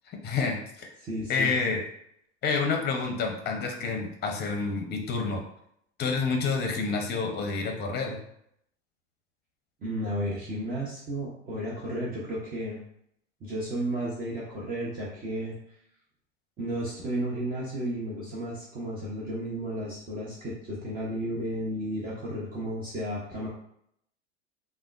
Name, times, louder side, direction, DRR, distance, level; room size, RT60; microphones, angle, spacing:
voice 1, 0.2-0.9 1.3-1.8 2.4-5.4 6.0-8.2, left 4 dB, 30° left, 3 dB, 0.7 m, -28 dB
voice 2, 1.0-1.5 9.8-12.8 13.4-15.5 16.6-23.5, right 1 dB, 25° right, -6 dB, 0.8 m, -33 dB
3.4 x 2.2 x 2.4 m, 0.72 s
hypercardioid pair, 100°, 36 cm